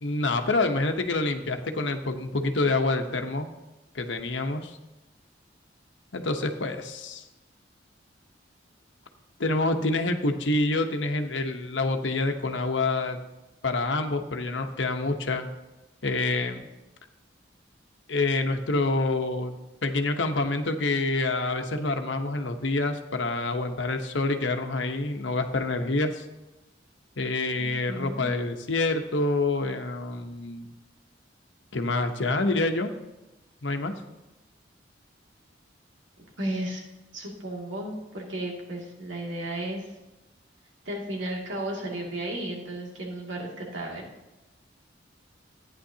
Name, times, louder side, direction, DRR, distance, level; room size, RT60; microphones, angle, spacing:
voice 1, 0.0-3.5 3.9-4.8 6.1-7.2 9.4-13.2 13.6-15.5 16.0-16.6 18.1-19.6 19.8-26.3 27.2-30.7 31.7-32.9 33.6-34.0, left 2 dB, 85° left, 6 dB, 1.0 m, -27 dB
voice 2, 27.5-28.3 36.2-36.8 37.1-39.9 40.8-44.0, right 1 dB, 85° right, -2 dB, 2.4 m, -34 dB
14.5 x 9.7 x 2.8 m, 1.0 s
head